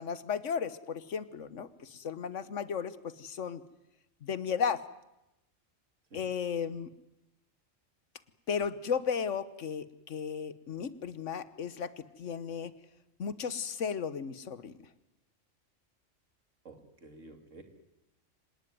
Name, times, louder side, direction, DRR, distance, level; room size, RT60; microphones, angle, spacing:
voice 1, 0.0-3.6 4.2-4.8 6.1-6.9 8.5-12.7 13.2-14.8, left 6 dB, 80° left, 15 dB, 1.5 m, -35 dB
voice 2, 16.6-17.6, right 2 dB, 85° right, 6 dB, 3.1 m, -51 dB
25.5 x 19.0 x 9.4 m, 0.91 s
omnidirectional pair, 1.3 m